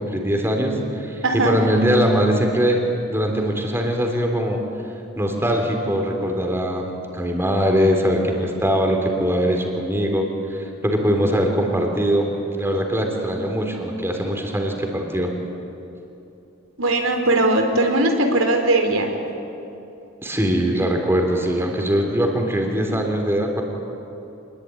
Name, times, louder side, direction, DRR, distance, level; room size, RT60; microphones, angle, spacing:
voice 1, 0.0-2.8 3.1-4.6 5.2-12.3 12.5-15.3 20.2-23.6, equal, 10° right, 2 dB, 3.4 m, -21 dB
voice 2, 1.2-1.6 16.8-19.2, right 2 dB, 85° right, 4 dB, 3.7 m, -19 dB
26.5 x 21.0 x 9.7 m, 2.8 s
head